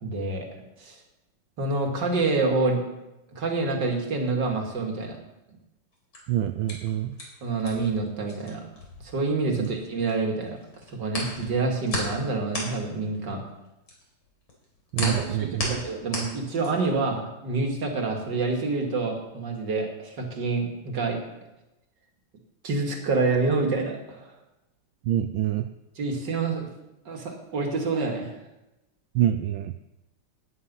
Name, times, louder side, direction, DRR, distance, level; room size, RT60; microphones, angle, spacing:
voice 1, 0.0-0.5 0.8-1.0 1.6-2.8 3.3-5.2 7.4-8.6 9.0-10.6 10.9-13.4 15.0-21.2 22.6-24.3 26.0-26.7 27.1-28.3, right 3 dB, 55° right, 2 dB, 2.9 m, -27 dB
sound 1, 5.9-10.1 10.4-17.0, left 2 dB, 70° left, 4.6 m, -35 dB
voice 2, 6.3-7.2 9.6-9.7 14.9-15.8 25.1-25.7 29.1-29.7, right 11 dB, 75° right, 9 dB, 1.3 m, -26 dB
17.5 x 9.9 x 5.5 m, 0.97 s
omnidirectional pair, 2.3 m